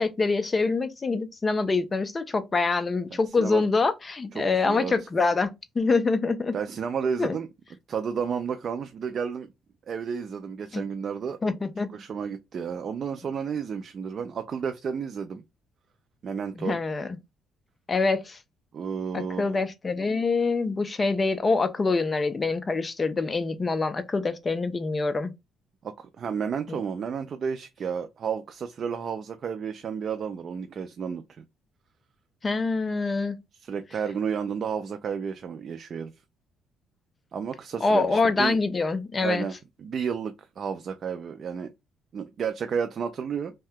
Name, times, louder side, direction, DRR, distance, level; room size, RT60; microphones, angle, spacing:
voice 1, 0.0-6.5 7.2-7.4 10.7-10.8 11.4-11.9 16.6-17.1 17.9-18.4 19.1-25.3 26.7-26.8 32.4-33.4 37.8-39.5, left 3 dB, 25° left, 0.4 m, -25 dB
voice 2, 3.1-3.6 4.4-4.9 6.5-7.5 7.9-9.5 9.9-11.4 11.9-15.4 16.2-16.8 18.7-19.6 25.8-31.4 33.6-36.1 37.3-38.6 39.2-41.7 42.1-43.5, right 6 dB, 45° right, 0.3 m, -32 dB
2.7 x 2.1 x 3.4 m
cardioid pair, 115°, 0 cm